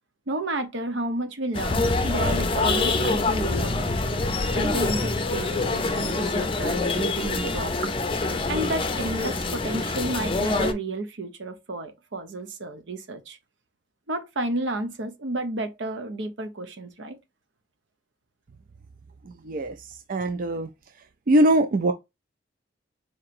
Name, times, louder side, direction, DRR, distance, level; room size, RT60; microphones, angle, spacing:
voice 1, 0.3-3.7 4.5-7.9 8.5-13.4 14.1-17.2, right 1 dB, 80° right, 0.8 m, -31 dB
sound 1, 1.5-10.7, left 3 dB, 30° left, 0.5 m, -25 dB
voice 2, 19.3-20.7 21.3-21.9, right 1 dB, 50° right, 0.4 m, -22 dB
4.6 x 2.9 x 2.5 m
head